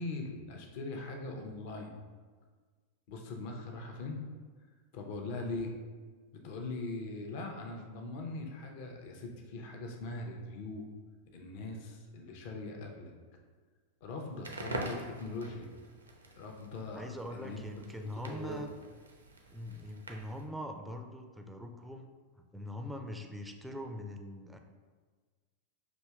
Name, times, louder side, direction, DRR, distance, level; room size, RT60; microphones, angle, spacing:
voice 1, 0.0-1.9 3.1-4.2 4.9-5.7 6.3-10.9 11.3-13.1 14.0-15.7 16.4-17.0 17.3-17.6 17.9-18.7, left 2 dB, 50° left, 2 dB, 0.5 m, -41 dB
Crackle, 14.3-20.5, right 2 dB, 75° right, 0.5 m, -45 dB
voice 2, 16.9-18.7 19.5-22.1 22.4-24.6, left 1 dB, 5° right, 4 dB, 0.4 m, -42 dB
6.0 x 2.7 x 2.3 m, 1.5 s
figure-of-eight pair, 90°, 0 cm